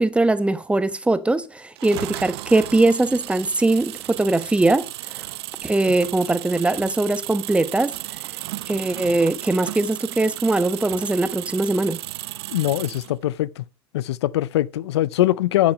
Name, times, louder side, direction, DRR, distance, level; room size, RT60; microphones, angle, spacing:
voice 1, 0.0-5.2 5.6-7.9 8.7-12.0, right 2 dB, 10° right, 1.0 m, -21 dB
sound 1, 1.8-13.2, right 17 dB, 75° right, 0.7 m, -34 dB
voice 2, 12.5-13.6 13.9-15.7, left 14 dB, 80° left, 0.5 m, -22 dB
9.6 x 6.2 x 7.5 m
hypercardioid pair, 100°, 14 cm